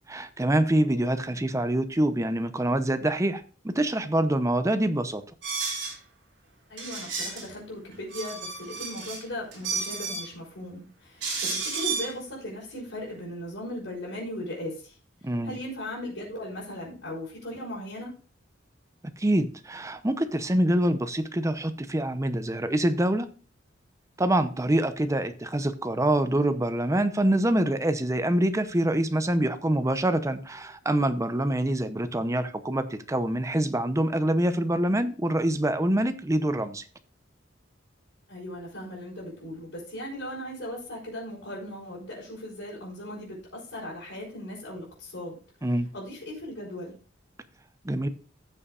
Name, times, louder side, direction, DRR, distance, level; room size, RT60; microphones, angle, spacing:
voice 1, 0.1-5.2 15.2-15.6 19.2-23.3 24.2-36.8 45.6-45.9 47.8-48.1, right 1 dB, 15° right, 0.7 m, -25 dB
sound 1, 5.4-5.9 6.8-7.4 7.9-9.2 9.5-10.3 11.2-12.1, right 4 dB, 70° right, 5.1 m, -32 dB
voice 2, 6.7-15.0 15.4-18.1 38.3-45.4 45.9-46.9, left 1 dB, 75° left, 4.5 m, -38 dB
15.5 x 7.1 x 2.5 m
head